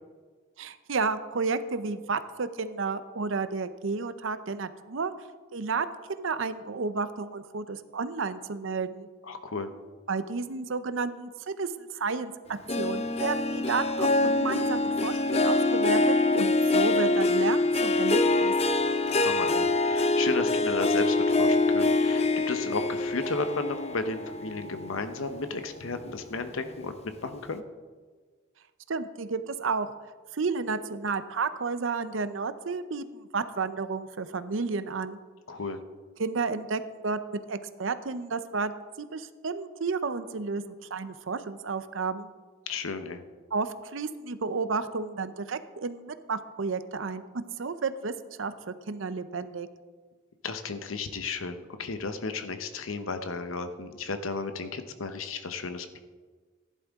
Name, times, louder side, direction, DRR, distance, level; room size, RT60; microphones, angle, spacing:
voice 1, 0.6-5.1 5.5-9.1 10.1-18.5 28.9-29.9 30.3-35.2 36.2-38.7 39.0-42.3 43.5-48.1 48.4-48.5 48.9-49.7, right 4 dB, 70° right, 12 dB, 0.6 m, -32 dB
voice 2, 9.2-9.7 19.2-27.6 35.5-35.8 42.7-43.2 50.4-56.0, left 3 dB, 80° left, 8 dB, 0.9 m, -34 dB
Harp, 12.7-25.4 25.8-26.2 26.7-26.8, left 2 dB, 30° left, 0.5 m, -25 dB
15.0 x 11.0 x 3.6 m, 1.5 s
head